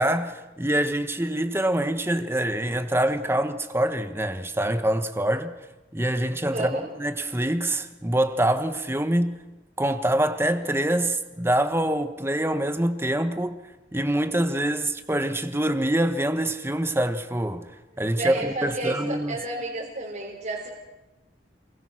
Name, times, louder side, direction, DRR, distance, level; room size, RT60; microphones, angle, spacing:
voice 1, 0.0-5.5 5.9-9.4 9.8-13.6 13.9-17.7 18.0-19.4, right 1 dB, 15° right, 1.3 m, -25 dB
voice 2, 6.5-6.9 18.2-20.7, right 2 dB, 45° right, 3.9 m, -31 dB
28.0 x 21.5 x 6.3 m
head